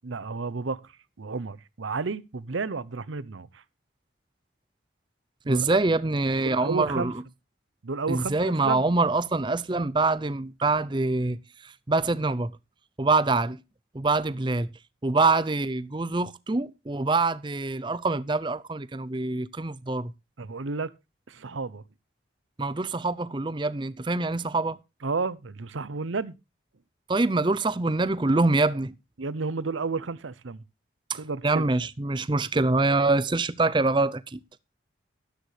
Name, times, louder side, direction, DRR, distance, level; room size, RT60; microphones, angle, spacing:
voice 1, 0.0-0.8 1.2-3.6 5.4-5.8 6.4-7.1 7.8-8.9 20.4-20.9 21.3-21.8 25.0-26.4 29.2-30.6 31.1-31.6, right 4 dB, 80° right, 0.7 m, -32 dB
voice 2, 5.5-7.1 8.1-12.5 13.0-13.6 13.9-14.7 15.0-20.1 22.6-24.8 27.1-28.9 31.1-34.4, right 3 dB, 25° right, 0.5 m, -25 dB
13.0 x 11.5 x 3.3 m
head